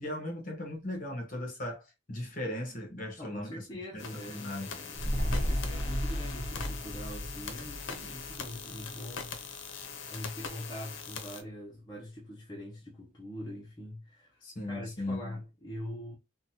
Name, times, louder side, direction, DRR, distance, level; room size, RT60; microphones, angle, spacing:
voice 1, 0.0-1.8 2.1-4.8 14.4-15.4, left 1 dB, 40° left, 1.1 m, -38 dB
voice 2, 3.2-9.4 10.1-16.2, left 1 dB, 20° left, 0.6 m, -43 dB
sound 1, 4.0-11.4, left 5 dB, 65° left, 0.6 m, -42 dB
sound 2, 4.9-9.5 9.8-9.9, equal, 35° right, 0.8 m, -34 dB
3.8 x 2.1 x 2.8 m
head